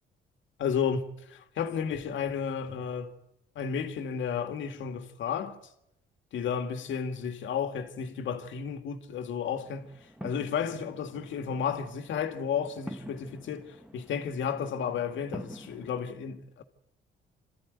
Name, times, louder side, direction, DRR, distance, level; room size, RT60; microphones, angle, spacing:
voice 1, 0.6-3.2 3.6-5.6 6.3-9.9 10.2-16.6, left 7 dB, 75° left, 2.1 m, -32 dB
sound 1, 9.5-16.1, right 1 dB, 5° right, 1.5 m, -47 dB
28.0 x 13.5 x 9.4 m
cardioid pair, 90°, 20 cm